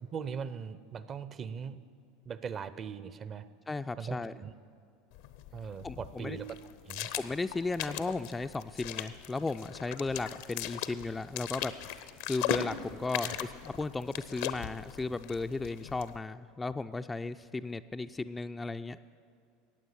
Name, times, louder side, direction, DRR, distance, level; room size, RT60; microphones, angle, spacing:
voice 1, 0.0-1.8 2.3-3.4 4.0-4.5 5.5-6.5 6.9-7.1 13.2-13.4, right 6 dB, 35° right, 14 dB, 0.6 m, -40 dB
voice 2, 3.7-4.3 5.8-6.4 7.2-11.7 12.3-19.0, left 3 dB, 15° left, 9 dB, 0.3 m, -35 dB
sound 1, 5.1-16.2, left 11 dB, 60° left, 0.6 m, -39 dB
15.0 x 9.2 x 7.4 m, 2.3 s
figure-of-eight pair, 75°, 0 cm